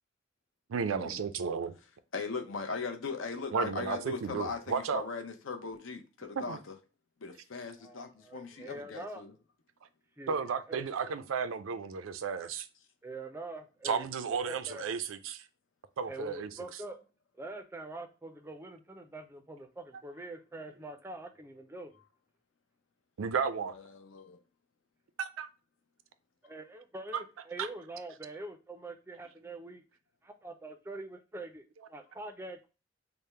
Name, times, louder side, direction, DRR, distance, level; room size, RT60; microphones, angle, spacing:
voice 1, 0.7-1.7 3.5-5.0 6.4-6.6 10.3-12.7 13.8-15.4 16.0-16.5 23.2-23.8 25.2-25.5 27.1-27.2 27.6-27.7, right 6 dB, 90° right, 0.4 m, -33 dB
voice 2, 2.1-6.6 7.2-9.3 23.9-24.4, left 4 dB, 80° left, 0.6 m, -39 dB
voice 3, 7.8-9.2 10.2-10.9 13.0-14.1 14.5-14.8 16.1-17.1 17.3-22.0 26.4-29.8 30.2-32.7, right 2 dB, 10° right, 0.4 m, -44 dB
3.4 x 2.0 x 4.2 m
head